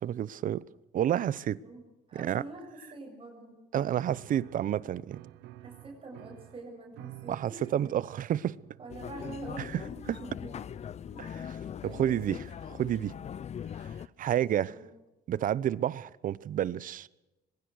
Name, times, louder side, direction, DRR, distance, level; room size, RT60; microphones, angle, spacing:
voice 1, 0.0-0.6 0.9-1.6 2.2-2.4 3.7-5.2 7.3-8.5 10.1-10.2 11.2-11.6 11.8-13.1 14.2-14.7 15.3-17.1, right 11 dB, 55° right, 0.8 m, -30 dB
voice 2, 1.6-3.6 5.6-7.9 8.8-9.9 10.2-10.6 11.1-11.3 11.8-12.1 14.2-14.9, right 2 dB, 30° right, 7.6 m, -46 dB
Piano, 4.0-12.5, right 15 dB, 90° right, 1.1 m, -53 dB
sound 1, 8.9-14.1, left 8 dB, 40° left, 0.7 m, -41 dB
23.5 x 21.5 x 6.5 m
cardioid pair, 110°, 17 cm